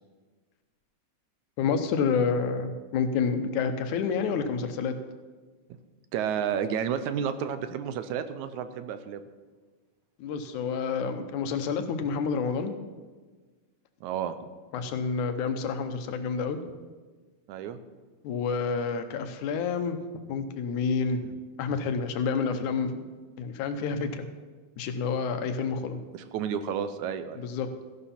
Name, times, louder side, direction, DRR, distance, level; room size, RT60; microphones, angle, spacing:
voice 1, 1.6-5.0 10.2-12.7 14.7-16.6 18.2-23.1 23.4-24.3 24.8-26.0 27.4-27.7, left 5 dB, 80° left, 8 dB, 2.3 m, -29 dB
voice 2, 6.1-9.2 14.0-14.4 17.5-17.8 26.1-27.5, right 8 dB, 80° right, 11 dB, 2.0 m, -31 dB
15.0 x 11.0 x 4.3 m, 1.3 s
omnidirectional pair, 3.5 m